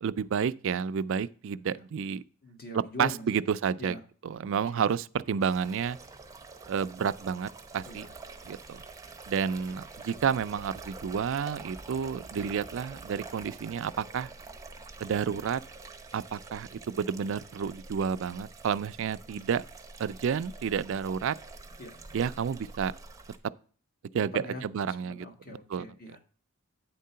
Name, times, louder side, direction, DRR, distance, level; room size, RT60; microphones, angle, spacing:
voice 1, 0.0-2.2 2.7-4.0 4.2-6.0 6.7-8.1 8.5-8.8 9.3-14.3 15.0-15.6 16.1-19.6 20.0-21.4 22.1-22.9 24.1-24.3 24.6-25.9, right 7 dB, 60° right, 0.4 m, -30 dB
voice 2, 2.4-3.4 3.8-4.0 4.7-4.9 7.8-8.1 9.4-9.5 21.8-21.9 24.1-26.2, left 2 dB, 45° left, 1.4 m, -42 dB
sound 1, 5.4-23.4, right 3 dB, 15° right, 0.7 m, -47 dB
9.1 x 3.7 x 5.5 m
head